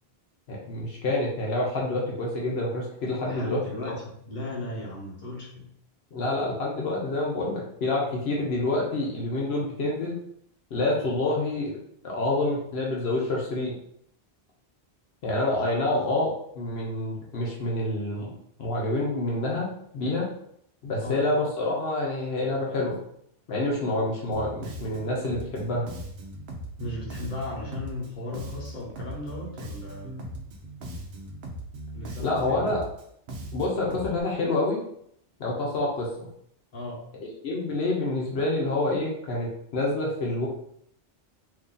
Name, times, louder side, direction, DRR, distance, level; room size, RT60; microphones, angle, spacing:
voice 1, 0.5-3.6 3.8-4.0 6.1-10.2 10.7-11.8 12.0-13.8 15.2-18.3 18.6-20.3 20.8-23.0 23.5-25.9 32.2-32.8 33.5-34.8 35.4-36.3 37.4-40.5, left 2 dB, 75° left, -3 dB, 1.0 m, -27 dB
voice 2, 3.2-5.7 15.5-15.9 21.0-21.2 26.8-30.1 31.9-32.7 36.7-37.0, left 2 dB, 50° left, -4 dB, 1.2 m, -36 dB
Bass guitar, 24.3-34.2, right 1 dB, 70° right, 0.8 m, -39 dB
2.8 x 2.7 x 3.7 m, 0.70 s
omnidirectional pair, 1.1 m